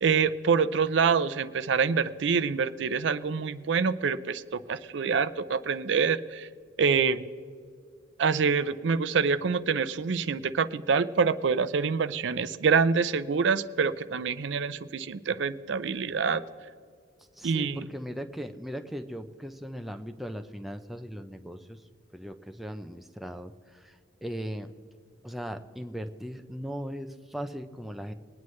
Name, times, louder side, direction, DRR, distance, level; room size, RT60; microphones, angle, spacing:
voice 1, 0.0-6.5 6.8-7.2 8.2-16.4 17.4-17.9, right 5 dB, 65° right, 14 dB, 0.4 m, -26 dB
voice 2, 17.4-21.8 22.1-24.7 25.2-28.1, equal, ahead, 6 dB, 0.4 m, -38 dB
22.0 x 9.4 x 3.2 m, 2.1 s
head